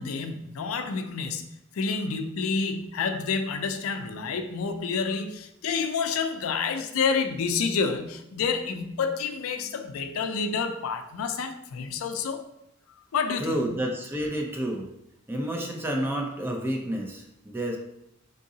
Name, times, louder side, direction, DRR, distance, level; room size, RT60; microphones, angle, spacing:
voice 1, 0.0-1.5 1.7-12.4 13.1-13.6, left 5 dB, 75° left, 8 dB, 0.4 m, -29 dB
voice 2, 13.4-14.9 15.3-17.8, right 1 dB, 10° right, 1 dB, 0.4 m, -30 dB
3.8 x 3.7 x 2.7 m, 0.82 s
head